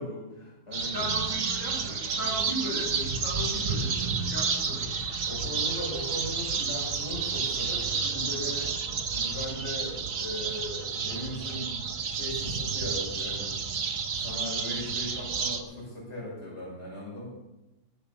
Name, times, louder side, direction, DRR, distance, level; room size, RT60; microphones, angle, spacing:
voice 1, 0.0-0.9 5.3-8.7 9.1-11.7 12.1-13.6 14.2-17.3, left 1 dB, 55° left, -5 dB, 5.9 m, -38 dB
sound 1, 0.7-15.6, right 5 dB, 80° right, 1.6 m, -31 dB
voice 2, 0.8-4.9, equal, 75° left, -6 dB, 5.8 m, -36 dB
18.5 x 6.9 x 7.0 m, 0.99 s
omnidirectional pair, 1.4 m